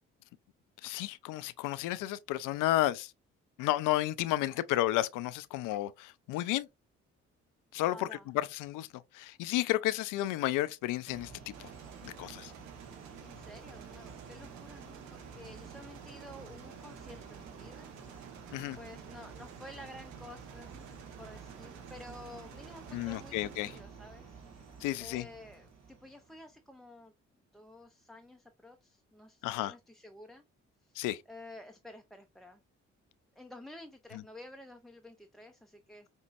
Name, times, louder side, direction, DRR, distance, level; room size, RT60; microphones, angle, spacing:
voice 1, 0.8-3.1 3.6-6.7 7.7-8.0 8.5-8.9 9.1-11.7 12.0-12.5 18.5-18.8 22.9-23.7 24.8-25.2 29.4-29.7 31.0-31.2, left 15 dB, 65° left, 0.5 m, -32 dB
voice 2, 7.9-8.4 13.2-17.9 18.2-20.9 21.2-24.4 25.0-27.1 27.5-30.4 30.8-31.0 31.3-32.6 33.4-36.1, left 1 dB, ahead, 0.5 m, -51 dB
sound 1, 11.1-26.5, right 5 dB, 50° right, 1.4 m, -51 dB
sound 2, 11.5-23.8, right 8 dB, 85° right, 0.7 m, -52 dB
5.3 x 2.9 x 2.5 m
hypercardioid pair, 45°, 34 cm